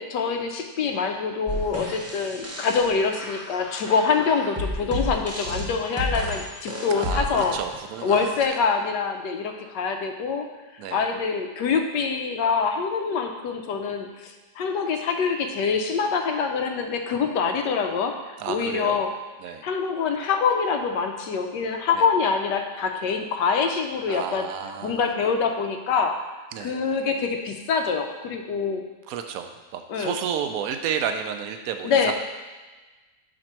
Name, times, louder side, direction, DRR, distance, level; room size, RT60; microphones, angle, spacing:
voice 1, 0.0-7.6 8.0-10.5 10.9-19.1 19.6-24.5 24.8-26.2 26.6-28.8 29.9-30.1 31.8-32.1, left 5 dB, 85° left, 5 dB, 1.3 m, -25 dB
sound 1, 1.5-8.5, left 1 dB, 15° right, 0.5 m, -32 dB
voice 2, 6.9-8.3 10.8-11.0 18.4-19.0 19.4-19.6 21.9-22.1 24.1-25.1 26.5-26.8 29.1-32.1, right 8 dB, 70° right, 7 dB, 0.9 m, -31 dB
5.1 x 4.3 x 5.9 m, 1.2 s
omnidirectional pair, 1.8 m